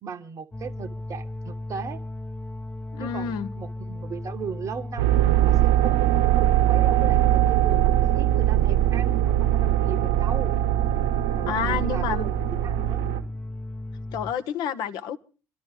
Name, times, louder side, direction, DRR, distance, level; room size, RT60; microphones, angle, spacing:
voice 1, 0.0-2.0 3.0-10.5 11.4-13.1, right 6 dB, 45° right, 0.9 m, -37 dB
sound 1, 0.5-14.3, left 1 dB, 15° left, 0.6 m, -36 dB
voice 2, 2.9-3.5 11.5-12.3 14.1-15.2, left 8 dB, 65° left, 0.9 m, -29 dB
sound 2, 5.0-13.2, right 13 dB, 75° right, 1.2 m, -21 dB
26.5 x 12.0 x 3.1 m
figure-of-eight pair, 50°, 8 cm